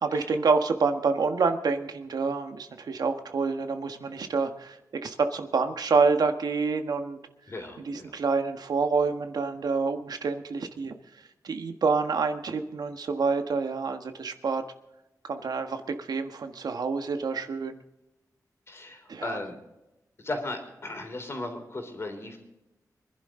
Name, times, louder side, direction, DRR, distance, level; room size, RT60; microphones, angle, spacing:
voice 1, 0.0-7.2 7.8-14.6 15.2-17.8 19.1-19.4, right 4 dB, 80° right, 6 dB, 1.4 m, -27 dB
voice 2, 7.5-8.1 18.7-19.6 20.2-22.4, left 2 dB, 40° left, 4 dB, 3.5 m, -36 dB
25.0 x 11.5 x 3.8 m, 0.94 s
wide cardioid pair, 150°, 7 cm